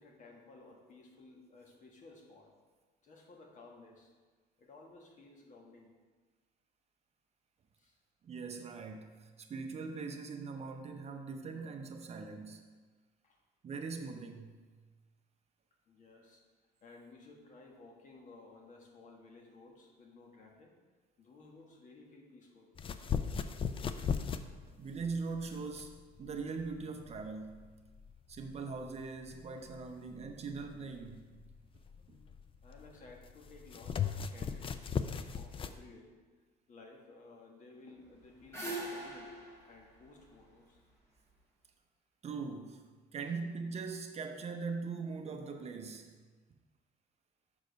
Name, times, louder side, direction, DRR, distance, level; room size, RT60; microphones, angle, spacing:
voice 1, 0.0-2.5 3.0-4.1 4.6-5.9 7.8-8.0 13.2-13.4 15.9-16.4 16.8-20.7 21.2-22.7 32.6-36.1 36.7-39.4 39.7-40.8, left 3 dB, 50° left, 0 dB, 1.4 m, -56 dB
voice 2, 8.2-12.6 13.6-14.7 24.7-25.9 26.2-27.7 28.3-31.3 32.1-32.2 42.2-42.9 43.1-46.1, right 4 dB, 40° right, 5 dB, 0.7 m, -41 dB
sound 1, 22.8-35.8, left 7 dB, 30° left, 0.4 m, -39 dB
sound 2, 38.0-41.2, right 1 dB, 15° left, 1.8 m, -43 dB
6.3 x 4.8 x 5.2 m, 1.4 s
cardioid pair, 110°, 17 cm